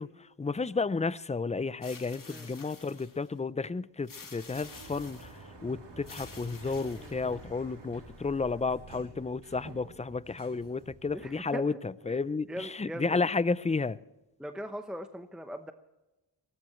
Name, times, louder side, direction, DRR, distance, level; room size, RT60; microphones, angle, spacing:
voice 1, 0.0-14.0, left 4 dB, 15° left, 0.5 m, -32 dB
sound 1, 1.8-3.3 4.1-5.4 6.0-7.5, left 4 dB, 45° left, 2.5 m, -50 dB
Sliding door, 4.3-11.5, right 3 dB, 70° right, 3.6 m, -50 dB
voice 2, 6.9-7.4 11.1-11.6 12.1-12.2 12.5-13.2 14.4-15.7, equal, ahead, 0.8 m, -40 dB
23.0 x 18.0 x 3.1 m
wide cardioid pair, 100°, 44 cm